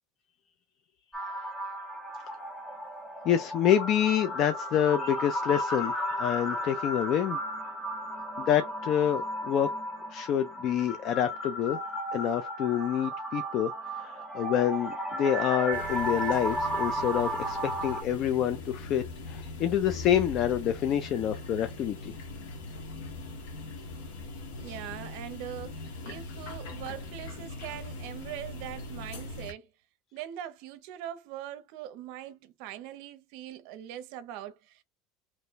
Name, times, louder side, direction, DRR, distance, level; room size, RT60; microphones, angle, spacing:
sound 1, 1.1-18.0, equal, 10° left, 0.7 m, -34 dB
voice 1, 3.2-7.4 8.4-9.7 10.1-11.8 12.1-22.2, left 10 dB, 35° left, 0.3 m, -27 dB
sound 2, 15.7-29.5, left 2 dB, 85° left, 1.1 m, -41 dB
voice 2, 24.6-29.7 30.1-34.8, right 11 dB, 55° right, 0.6 m, -42 dB
3.0 x 2.1 x 3.9 m
cardioid pair, 170°, 0 cm